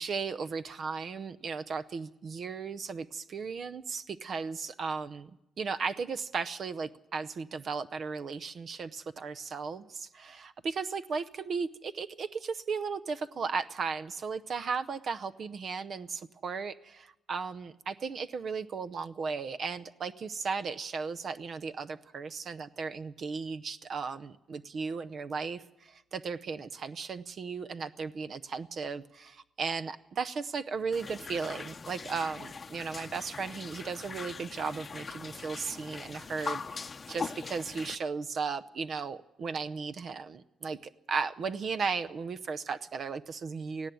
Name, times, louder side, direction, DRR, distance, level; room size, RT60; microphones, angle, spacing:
voice 1, 0.0-5.3 5.6-43.9, right 5 dB, 55° right, 10 dB, 0.7 m, -36 dB
sound 1, 30.9-37.9, left 5 dB, 35° left, 0.7 m, -41 dB
18.0 x 15.5 x 9.3 m, 0.91 s
cardioid pair, 90°, 0 cm